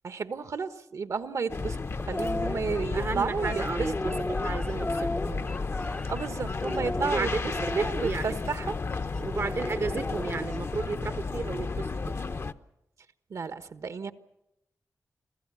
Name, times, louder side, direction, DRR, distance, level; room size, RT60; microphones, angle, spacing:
voice 1, 0.0-1.8 2.1-4.2 6.1-8.8 13.3-14.1, right 5 dB, 75° right, 11 dB, 1.3 m, -32 dB
sound 1, 1.5-12.5, left 4 dB, 50° left, 0.9 m, -33 dB
sound 2, 2.0-2.6 3.4-6.3 6.6-8.1 9.3-10.7, left 1 dB, 15° left, 0.7 m, -34 dB
voice 2, 2.9-4.0 4.4-5.0 5.3-5.5 7.0-8.4 9.2-11.9, right 4 dB, 50° right, 11 dB, 0.8 m, -33 dB
27.5 x 16.0 x 8.4 m, 0.87 s
wide cardioid pair, 75°, 6 cm